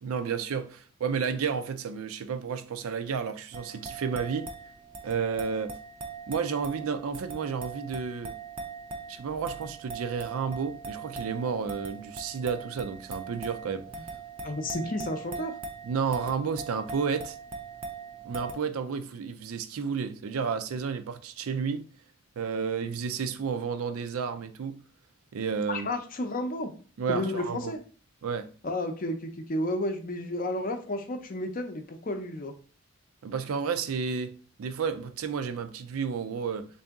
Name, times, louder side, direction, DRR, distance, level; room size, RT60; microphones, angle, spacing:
voice 1, 0.0-4.5 5.0-5.7 6.3-8.4 9.1-13.9 15.8-17.4 18.2-21.9 22.4-24.8 25.3-25.9 27.0-27.7 28.2-28.5 33.2-34.3 34.6-36.7, right 6 dB, 85° right, 0.4 m, -31 dB
sound 1, 3.5-18.5, right 4 dB, 25° right, 0.4 m, -41 dB
voice 2, 14.4-15.5 25.7-26.7 27.1-27.8 28.6-32.5, left 1 dB, 40° left, 0.5 m, -32 dB
3.7 x 2.7 x 3.5 m
head